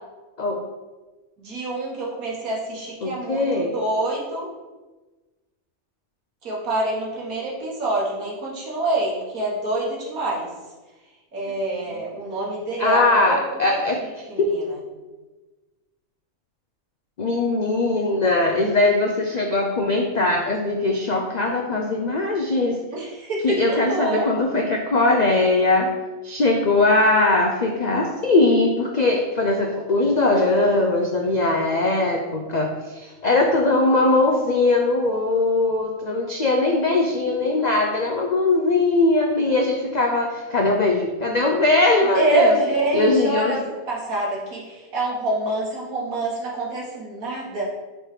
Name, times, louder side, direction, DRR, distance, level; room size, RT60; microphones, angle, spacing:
voice 1, 1.4-4.5 6.4-10.5 11.3-13.4 13.7-13.8 14.3-14.6 22.9-24.3 42.1-47.6, right 1 dB, 80° right, -3 dB, 1.8 m, -26 dB
voice 2, 3.0-3.7 11.9-12.0 12.8-14.0 14.4-14.5 17.2-22.8 23.4-25.9 26.2-42.5 42.9-43.6, left 2 dB, 75° left, 1 dB, 0.3 m, -20 dB
6.1 x 3.1 x 4.9 m, 1.2 s
omnidirectional pair, 1.5 m